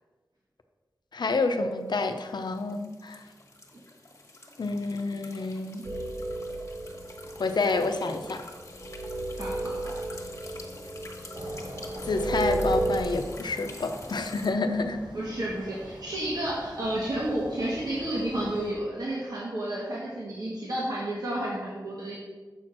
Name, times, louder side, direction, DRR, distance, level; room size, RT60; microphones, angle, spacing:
voice 1, 1.1-3.2 4.6-5.8 7.4-8.4 12.1-15.0, left 3 dB, 85° left, 7 dB, 0.6 m, -28 dB
sound 1, 1.7-14.5, left 2 dB, 40° left, 1.3 m, -47 dB
sound 2, 5.8-13.0, right 2 dB, 45° right, 0.8 m, -33 dB
voice 2, 9.4-9.8 15.1-22.2, right 1 dB, 65° right, -6 dB, 1.6 m, -31 dB
sound 3, 11.3-18.7, equal, 85° right, 1.3 m, -46 dB
7.0 x 4.4 x 6.2 m, 1.3 s
wide cardioid pair, 75°, 7 cm